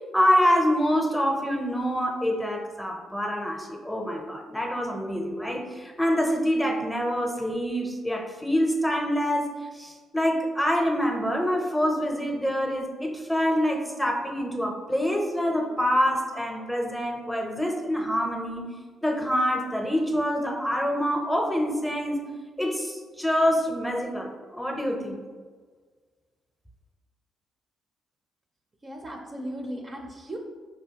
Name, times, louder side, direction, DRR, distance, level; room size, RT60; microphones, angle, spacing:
voice 1, 0.1-9.5 9.7-18.7 19.0-22.2 22.6-25.2, equal, 5° left, 1 dB, 0.7 m, -26 dB
voice 2, 28.8-30.4, right 1 dB, 30° right, 1 dB, 0.5 m, -36 dB
4.8 x 3.3 x 2.8 m, 1.5 s
cardioid pair, 90°, 0 cm